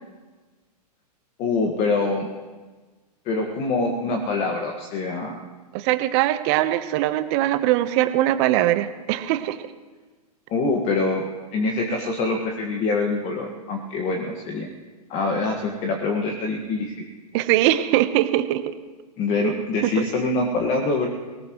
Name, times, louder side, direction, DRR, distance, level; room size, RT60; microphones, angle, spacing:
voice 1, 1.4-2.3 3.3-5.4 10.5-14.7 15.1-17.1 19.2-21.1, left 3 dB, 35° left, 2 dB, 1.8 m, -25 dB
voice 2, 5.7-9.6 17.3-18.7 19.4-19.5 19.8-20.0, right 14 dB, 40° right, 10 dB, 1.1 m, -21 dB
20.0 x 18.5 x 3.2 m, 1.3 s
hypercardioid pair, 120°, 21 cm